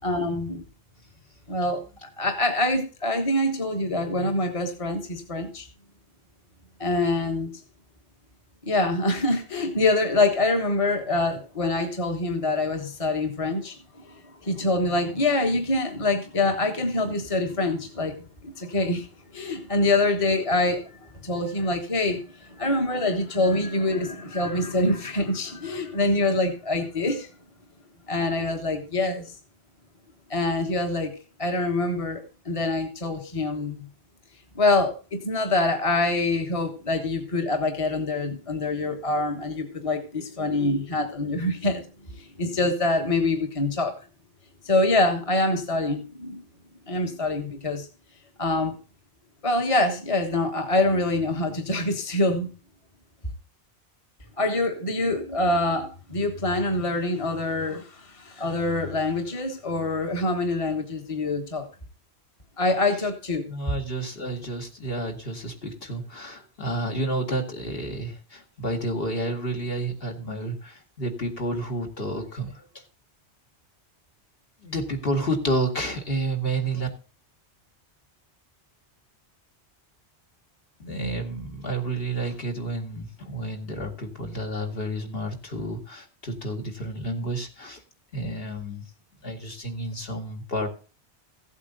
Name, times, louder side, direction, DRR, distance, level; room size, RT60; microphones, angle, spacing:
voice 1, 0.0-0.6 1.5-5.7 6.8-7.5 8.6-18.1 18.4-19.1 19.3-27.3 28.1-29.3 30.3-31.1 31.4-33.8 34.5-41.8 42.1-43.9 44.6-46.4 46.9-47.9 48.4-48.8 49.4-52.5 54.4-61.7 62.6-63.5, left 2 dB, 30° left, 4 dB, 1.5 m, -25 dB
voice 2, 63.5-72.8 74.6-76.9 80.8-87.8 88.1-88.8 89.2-90.7, right 1 dB, 60° left, 3 dB, 2.2 m, -30 dB
15.5 x 8.2 x 3.9 m, 0.34 s
omnidirectional pair, 1.1 m